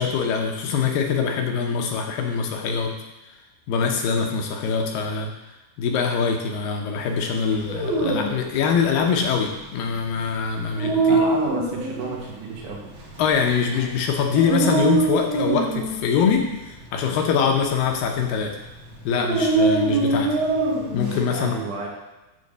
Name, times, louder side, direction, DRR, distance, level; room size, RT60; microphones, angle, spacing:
voice 1, 0.0-2.9 3.7-5.3 5.8-11.2 13.2-18.5 19.0-20.3 20.9-21.6, left 6 dB, 75° left, 2 dB, 2.2 m, -23 dB
Dog, 7.4-21.2, right 3 dB, 65° right, 1.2 m, -25 dB
voice 2, 11.1-12.9 21.3-21.9, right 4 dB, 80° right, -3 dB, 3.7 m, -32 dB
9.5 x 3.8 x 6.6 m, 1.0 s
omnidirectional pair, 4.8 m